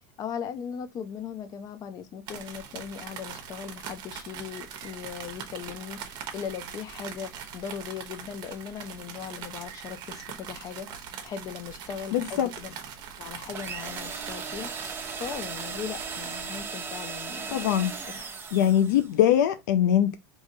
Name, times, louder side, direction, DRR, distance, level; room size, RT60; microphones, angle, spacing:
voice 1, 0.2-10.9 11.2-12.8 13.2-14.9 15.2-17.6 18.0-18.3 18.6-18.8, left 7 dB, 40° left, 0.7 m, -38 dB
sound 1, 2.3-16.6, right 8 dB, 50° right, 0.8 m, -42 dB
voice 2, 12.1-12.5 17.5-17.9 18.5-20.2, left 10 dB, 80° left, 0.4 m, -22 dB
sound 2, 13.5-19.1, right 5 dB, 25° right, 0.8 m, -37 dB
3.6 x 3.0 x 2.7 m
supercardioid pair, 115°, 10 cm